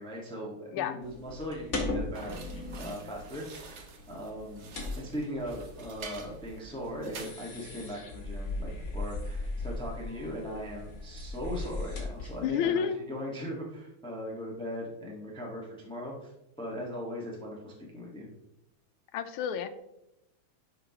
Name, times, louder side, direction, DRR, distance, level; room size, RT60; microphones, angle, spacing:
voice 1, 0.0-2.3 2.8-4.7 5.0-16.3 16.6-18.3, equal, 5° left, -2 dB, 1.2 m, -39 dB
sound 1, 1.0-12.5, left 2 dB, 35° left, 1.8 m, -39 dB
sound 2, 2.1-7.3, right 5 dB, 65° right, 0.7 m, -48 dB
voice 2, 12.4-13.0 19.1-19.7, left 8 dB, 80° left, 9 dB, 1.5 m, -30 dB
10.5 x 5.8 x 2.9 m, 0.86 s
omnidirectional pair, 2.3 m